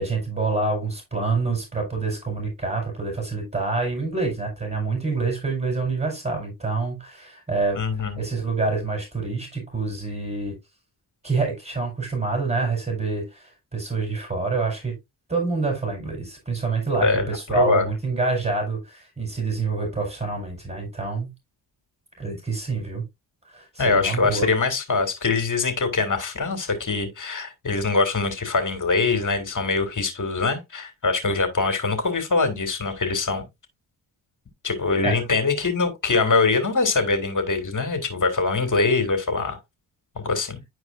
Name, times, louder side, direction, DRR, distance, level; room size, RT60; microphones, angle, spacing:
voice 1, 0.0-7.8 8.2-10.6 11.2-15.0 15.3-21.3 22.2-23.0 23.5-24.5 35.0-35.1, right 3 dB, 20° right, 4.6 m, -27 dB
voice 2, 7.8-8.2 16.9-17.9 23.8-33.5 34.6-39.6 40.1-40.6, left 3 dB, 40° left, 2.8 m, -23 dB
11.0 x 4.7 x 2.6 m
hypercardioid pair, 40°, 49 cm